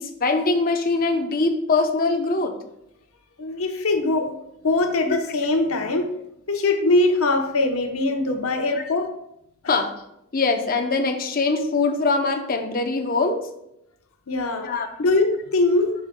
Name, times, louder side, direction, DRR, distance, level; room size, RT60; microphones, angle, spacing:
voice 1, 0.0-2.5 5.1-5.2 8.8-8.9 9.7-9.9 10.3-13.5 14.6-14.9, left 3 dB, 40° left, 6 dB, 0.6 m, -22 dB
voice 2, 3.4-4.3 4.6-6.1 6.5-9.1 9.6-9.7 14.3-14.7 15.0-15.9, left 2 dB, 70° left, 4 dB, 0.9 m, -22 dB
7.4 x 6.4 x 2.2 m, 0.79 s
head